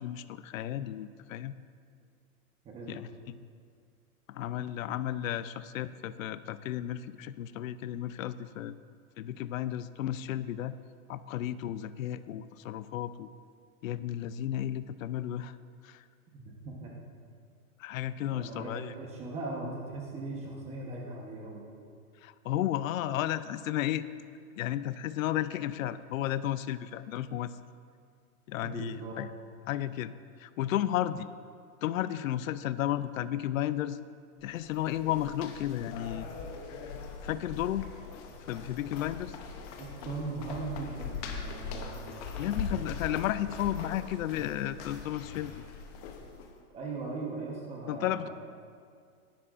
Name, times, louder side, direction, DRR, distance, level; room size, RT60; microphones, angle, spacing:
voice 1, 0.0-1.5 2.9-3.4 4.3-8.8 9.2-10.7 11.1-13.3 13.8-15.6 15.8-16.0 17.8-18.9 22.2-24.1 24.6-27.6 28.5-29.3 29.7-30.1 30.4-31.3 31.8-34.0 34.4-36.3 37.2-37.9 38.4-39.4 42.4-45.5 47.9-48.3, left 12 dB, 65° left, 14 dB, 0.5 m, -33 dB
voice 2, 2.6-3.0 16.3-16.9 18.2-21.6 28.6-29.3 39.8-42.2 44.4-44.5 46.7-48.3, right 3 dB, 15° right, -1 dB, 1.0 m, -39 dB
sound 1, 34.4-46.5, left 5 dB, 25° left, 0.8 m, -41 dB
17.5 x 11.0 x 2.5 m, 2.2 s
hypercardioid pair, 160°, 44 cm